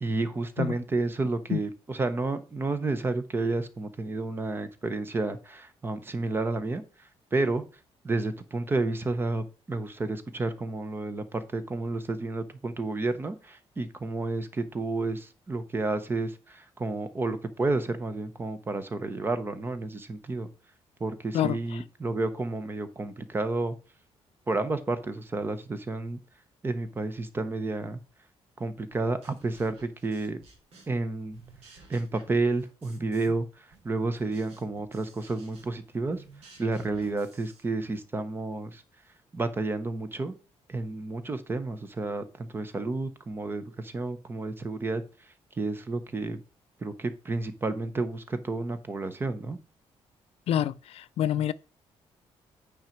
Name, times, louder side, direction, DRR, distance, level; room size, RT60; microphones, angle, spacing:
voice 1, 0.0-6.8 7.3-7.6 8.0-20.5 21.0-23.8 24.5-26.2 26.6-28.0 28.6-30.4 30.9-31.4 31.9-36.2 36.6-38.8 39.3-40.3 40.7-45.0 45.6-46.4 46.8-49.6, right 3 dB, 20° right, 0.9 m, -31 dB
voice 2, 21.3-21.8 50.5-51.5, left 10 dB, 70° left, 0.4 m, -27 dB
sound 1, 28.9-31.0 31.3-33.4 33.7-38.1, right 4 dB, 75° right, 3.1 m, -54 dB
8.8 x 5.2 x 4.5 m
cardioid pair, 165°, 11 cm